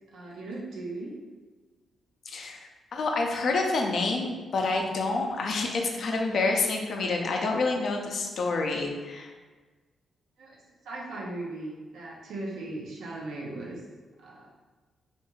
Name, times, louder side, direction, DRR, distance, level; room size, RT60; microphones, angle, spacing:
voice 1, 0.1-1.2 10.4-10.6 10.8-13.8 14.2-14.5, right 2 dB, 90° right, -3 dB, 0.6 m, -38 dB
voice 2, 2.3-2.6 2.9-9.3, left 3 dB, 65° left, 1 dB, 0.4 m, -28 dB
2.4 x 2.3 x 3.0 m, 1.3 s
cardioid pair, 70°, 0 cm